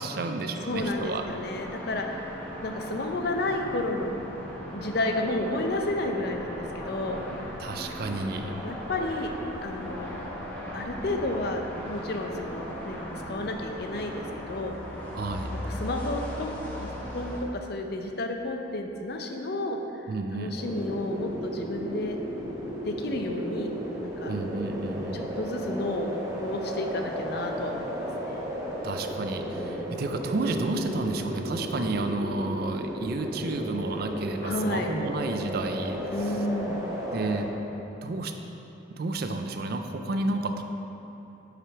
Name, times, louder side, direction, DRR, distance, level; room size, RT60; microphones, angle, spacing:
voice 1, 0.0-1.3 7.6-8.6 15.1-15.6 20.1-20.6 24.3-25.3 28.8-36.5 37.1-37.5 38.0-38.6 39.0-40.6, right 2 dB, 50° right, 6 dB, 0.4 m, -31 dB
voice 2, 0.7-4.2 4.7-7.2 7.5-7.6 8.6-9.3 9.6-10.2 10.7-13.0 13.3-14.7 15.6-22.2 22.8-23.7 24.0-24.3 25.1-26.1 26.3-28.4 29.6-30.0 34.4-34.9 36.1-36.9, left 2 dB, 55° left, 3 dB, 0.5 m, -32 dB
sound 1, 0.7-17.4, equal, 10° left, 0.9 m, -38 dB
sound 2, 20.6-37.4, equal, 15° right, 0.9 m, -34 dB
6.0 x 5.0 x 4.6 m, 3.0 s
head